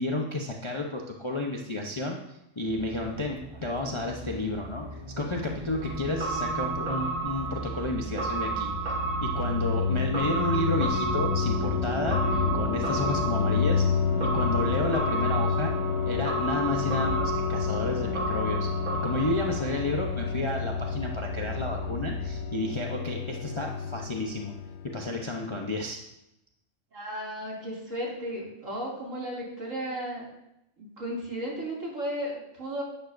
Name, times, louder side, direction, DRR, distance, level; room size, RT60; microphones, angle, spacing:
voice 1, 0.0-4.9 5.2-8.7 9.2-15.7 16.0-18.7 19.0-24.5 24.9-26.0, left 2 dB, 25° left, 0 dB, 0.7 m, -31 dB
sound 1, 2.7-22.4, right 3 dB, 35° right, 0.4 m, -39 dB
sound 2, 5.8-20.0 20.3-20.4, right 4 dB, 90° right, 2.3 m, -33 dB
sound 3, 8.3-25.0, left 6 dB, 65° left, 0.8 m, -30 dB
voice 2, 26.9-30.3 30.8-32.8, equal, 65° right, -4 dB, 3.0 m, -34 dB
11.5 x 9.0 x 2.6 m, 0.85 s
omnidirectional pair, 1.5 m